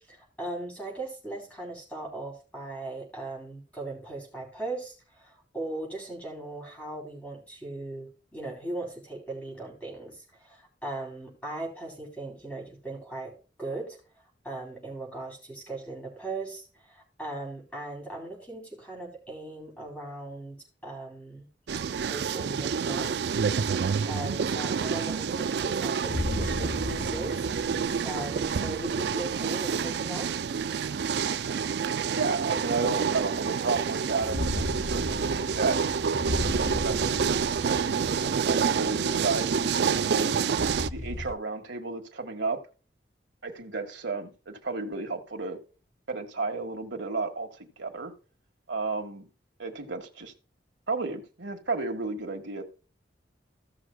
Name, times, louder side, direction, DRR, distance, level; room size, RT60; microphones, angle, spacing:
voice 1, 0.1-14.0 14.4-20.6 20.8-21.5 22.0-23.3 23.6-27.5 28.0-30.3, right 2 dB, 10° left, -2 dB, 3.7 m, -38 dB
sound 1, 21.7-40.9, right 6 dB, 65° right, 0.4 m, -28 dB
sound 2, 24.5-24.6 25.2-25.3 26.0-31.2 32.1-32.2 34.0-41.3, left 2 dB, 40° left, 0.6 m, -36 dB
voice 2, 32.1-35.8 36.5-37.4 38.1-40.3 40.9-42.6 43.4-45.6 46.1-48.1 48.7-49.3 49.6-50.3 50.9-52.6, right 3 dB, 85° right, 4 dB, 1.6 m, -32 dB
16.0 x 6.2 x 2.2 m, 0.35 s
head